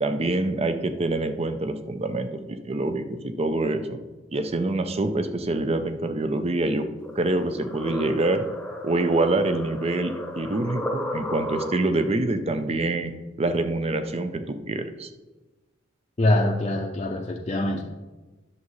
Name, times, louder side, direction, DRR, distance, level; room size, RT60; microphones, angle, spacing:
voice 1, 0.0-4.0 4.3-6.9 7.2-8.4 8.8-13.1 13.4-15.1, right 2 dB, 35° right, 9 dB, 0.6 m, -26 dB
sound 1, 7.0-12.1, left 1 dB, 5° left, 1.0 m, -34 dB
voice 2, 16.2-17.8, left 1 dB, 35° left, 0 dB, 0.6 m, -24 dB
10.5 x 7.2 x 3.2 m, 1.2 s
head